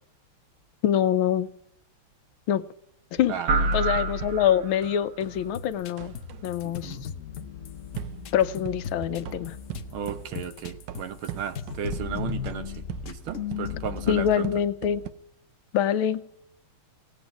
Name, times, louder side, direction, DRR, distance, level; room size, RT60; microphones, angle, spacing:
voice 1, 0.8-1.5 2.5-2.6 3.1-3.3 3.7-6.1 6.4-7.0 8.3-9.6 14.1-15.0 15.7-16.2, left 10 dB, 85° left, 1.6 m, -24 dB
sound 1, 3.1-5.4 6.0-6.5 8.0-15.1, right 11 dB, 70° right, 1.4 m, -40 dB
voice 2, 3.3-3.7 6.6-7.1 9.9-12.7 13.0-14.5, right 8 dB, 85° right, 2.0 m, -35 dB
sound 2, 3.5-5.1, right 2 dB, 50° right, 1.3 m, -26 dB
sound 3, 5.3-11.3 11.5-14.4, left 8 dB, 55° left, 0.9 m, -37 dB
17.5 x 8.4 x 9.0 m
omnidirectional pair, 2.2 m